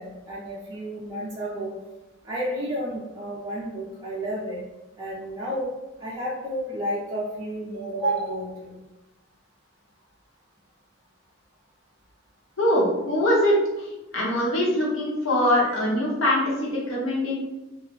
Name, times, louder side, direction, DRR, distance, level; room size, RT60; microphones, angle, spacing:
voice 1, 0.0-1.7 2.2-4.6 5.0-5.7 6.0-8.7 15.6-15.8, right 1 dB, 15° right, -8 dB, 0.4 m, -31 dB
voice 2, 12.6-13.5 14.1-17.3, left 1 dB, 60° left, -4 dB, 0.8 m, -22 dB
2.3 x 2.0 x 3.1 m, 0.99 s
head